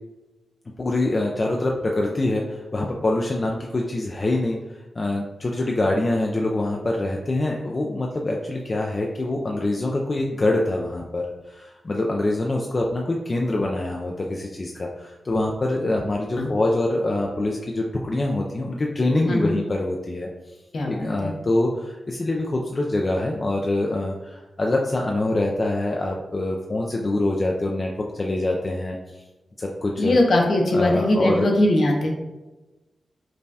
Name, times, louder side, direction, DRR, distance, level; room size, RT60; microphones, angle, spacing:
voice 1, 0.8-4.6 5.0-20.3 20.9-29.2 29.6-30.2 30.7-31.5, left 2 dB, 35° left, -1 dB, 0.3 m, -25 dB
voice 2, 19.2-19.6 20.7-21.3 30.0-32.1, left 1 dB, 60° left, 1 dB, 0.7 m, -21 dB
5.2 x 2.2 x 2.7 m, 1.1 s
wide cardioid pair, 105°, 0 cm